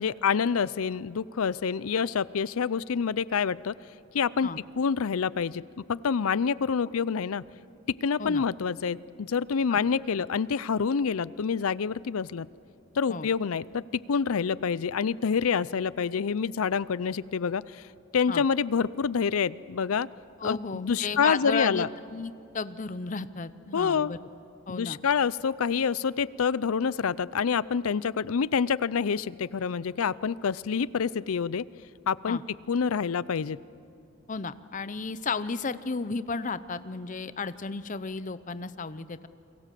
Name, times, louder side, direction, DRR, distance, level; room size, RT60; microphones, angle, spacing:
voice 1, 0.0-3.7 4.1-4.5 4.8-5.6 5.9-7.4 8.0-12.5 13.0-17.8 18.1-20.1 20.4-21.9 23.7-24.1 24.7-31.6 32.1-32.4 32.7-33.6, left 6 dB, 75° left, 20 dB, 0.5 m, -27 dB
voice 2, 20.4-24.2 24.7-25.0 32.3-32.4 34.3-39.3, left 4 dB, 35° left, 14 dB, 0.7 m, -33 dB
29.5 x 23.0 x 7.6 m, 2.7 s
head